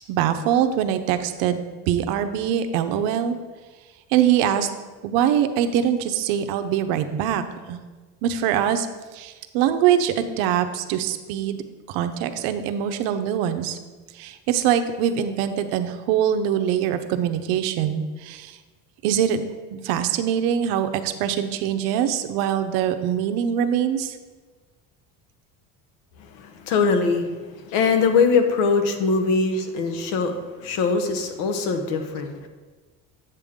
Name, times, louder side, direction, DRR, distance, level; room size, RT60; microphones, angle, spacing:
voice 1, 0.1-3.4 4.1-4.7 5.0-7.8 8.2-8.9 9.1-11.6 11.9-13.8 14.2-18.5 19.0-24.2, right 9 dB, 85° right, 9 dB, 0.7 m, -23 dB
voice 2, 26.2-32.5, left 4 dB, 80° left, 6 dB, 1.1 m, -22 dB
8.2 x 6.8 x 3.6 m, 1.3 s
cardioid pair, 150°, 34 cm